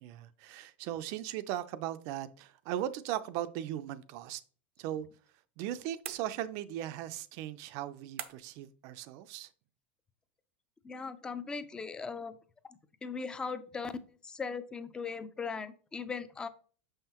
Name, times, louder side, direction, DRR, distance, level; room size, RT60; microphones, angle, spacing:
voice 1, 0.0-4.4 4.8-5.1 5.6-9.5, right 12 dB, 50° right, 0.5 m, -38 dB
sound 1, 6.0-6.8 8.2-8.7, right 10 dB, 90° right, 0.7 m, -44 dB
voice 2, 10.8-12.4 13.0-14.0 14.2-16.5, left 5 dB, 10° left, 0.4 m, -38 dB
6.5 x 5.6 x 2.9 m
supercardioid pair, 150°, 7 cm